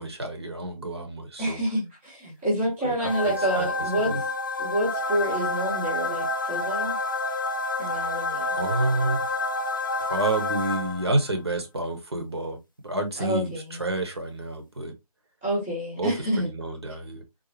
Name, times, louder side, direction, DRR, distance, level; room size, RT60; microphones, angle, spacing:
voice 1, 0.0-1.6 2.8-2.9 3.2-3.7 4.0-4.2 8.5-9.2 10.0-12.6 12.8-14.9 16.0-17.2, right 2 dB, 40° right, 0.9 m, -29 dB
voice 2, 1.4-4.1 4.6-7.0 7.8-8.5 13.2-13.8 15.4-16.5, right 1 dB, 5° right, 0.7 m, -28 dB
sound 1, 3.0-11.3, left 2 dB, 30° left, 0.4 m, -29 dB
3.9 x 2.5 x 2.9 m
figure-of-eight pair, 160°, 20 cm